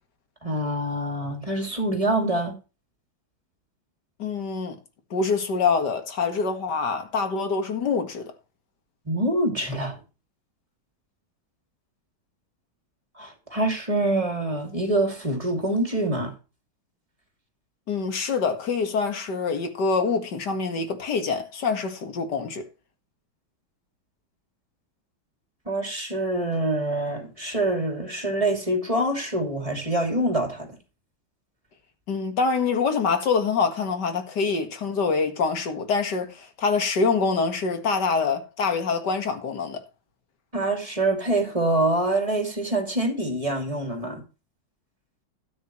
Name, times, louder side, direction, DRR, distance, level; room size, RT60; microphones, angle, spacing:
voice 1, 0.4-2.5 9.1-10.0 13.2-16.3 25.7-30.8 40.5-44.2, right 1 dB, 15° right, 2.8 m, -25 dB
voice 2, 4.2-4.8 5.1-8.3 17.9-22.6 32.1-39.8, left 5 dB, 55° left, 2.3 m, -25 dB
12.5 x 9.8 x 3.1 m
omnidirectional pair, 2.2 m